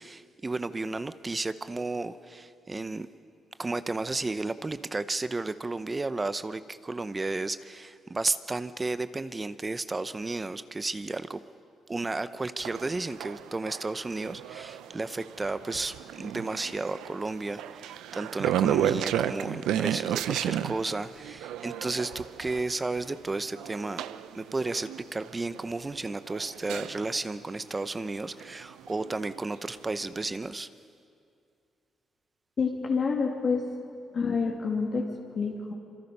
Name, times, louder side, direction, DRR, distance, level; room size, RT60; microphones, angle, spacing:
voice 1, 0.0-3.1 3.6-11.4 11.9-24.0 24.3-30.7, right 3 dB, 20° right, 13 dB, 0.8 m, -33 dB
sound 1, 12.6-27.3 28.4-29.6 30.0-30.1, right 11 dB, 85° right, 0.6 m, -33 dB
voice 2, 32.6-33.6 34.1-35.0 35.3-35.7, left 5 dB, 50° left, -2 dB, 2.6 m, -27 dB
26.0 x 24.5 x 5.5 m, 2.4 s
cardioid pair, 90°, 0 cm